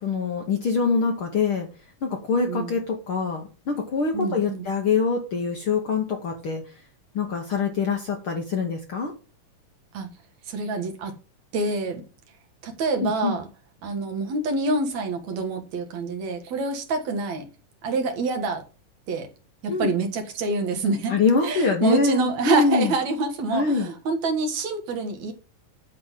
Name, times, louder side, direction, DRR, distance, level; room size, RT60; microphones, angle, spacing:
voice 1, 0.0-1.7 2.0-6.6 7.1-9.1 13.0-13.4 19.7-19.9 21.1-22.9 23.5-23.9, left 4 dB, 60° left, 1.4 m, -24 dB
voice 2, 2.5-2.8 4.1-4.7 9.9-10.1 10.5-11.1 11.5-12.0 12.6-13.5 13.8-17.5 17.8-18.6 19.1-19.3 19.6-25.3, right 3 dB, 60° right, 2.6 m, -27 dB
10.5 x 3.8 x 7.2 m
omnidirectional pair, 3.9 m